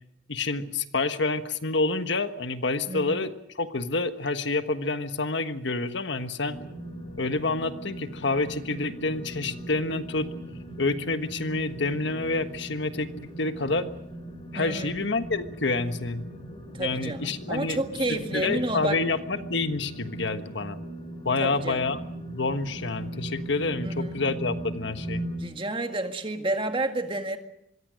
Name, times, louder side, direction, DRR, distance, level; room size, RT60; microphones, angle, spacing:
voice 1, 0.3-6.6 7.2-10.3 10.8-13.9 14.5-16.2 16.8-17.8 18.1-20.8 21.2-22.0 22.3-25.2, left 3 dB, 60° left, 9 dB, 1.4 m, -28 dB
voice 2, 2.9-3.2 14.6-15.0 16.7-19.0 21.4-21.9 23.8-24.2 25.4-27.4, right 2 dB, 25° right, 6 dB, 1.9 m, -30 dB
sound 1, 6.5-25.4, right 1 dB, 25° left, 5.8 m, -39 dB
26.0 x 22.0 x 6.4 m, 0.78 s
head